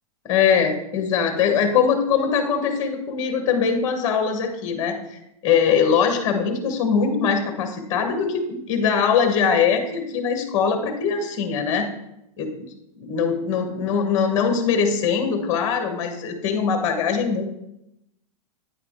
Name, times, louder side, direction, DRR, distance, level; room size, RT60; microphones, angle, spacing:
voice 1, 0.2-11.9 12.4-12.7 13.0-17.4, left 6 dB, 15° left, 5 dB, 0.7 m, -22 dB
8.9 x 4.9 x 3.5 m, 0.83 s
supercardioid pair, 170°, 19 cm